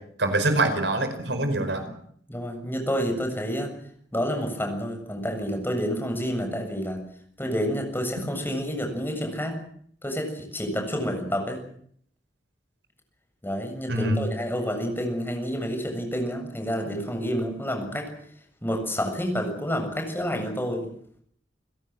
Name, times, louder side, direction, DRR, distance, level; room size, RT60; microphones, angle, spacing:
voice 1, 0.2-1.9 13.9-14.3, right 2 dB, 70° right, 8 dB, 4.9 m, -24 dB
voice 2, 2.3-3.7 4.1-7.0 7.4-9.6 10.0-11.6 13.4-18.1 18.6-20.9, equal, 10° left, 4 dB, 7.3 m, -29 dB
30.0 x 17.0 x 7.5 m, 0.64 s
head